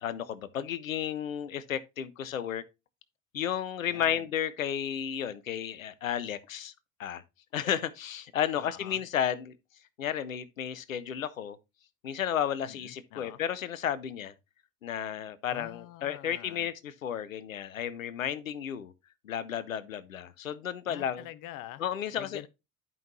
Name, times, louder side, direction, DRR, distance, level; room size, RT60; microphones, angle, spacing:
voice 1, 0.0-2.6 3.3-6.7 7.0-7.2 7.5-9.5 10.0-11.6 12.0-14.3 14.8-18.9 19.2-21.3 21.8-22.4, left 9 dB, 90° left, 0.6 m, -33 dB
voice 2, 3.8-4.3 8.6-9.0 12.7-13.4 15.5-16.7 20.9-21.8 22.2-22.5, left 14 dB, 55° left, 0.8 m, -45 dB
10.5 x 5.4 x 3.0 m
figure-of-eight pair, 60°, 40 cm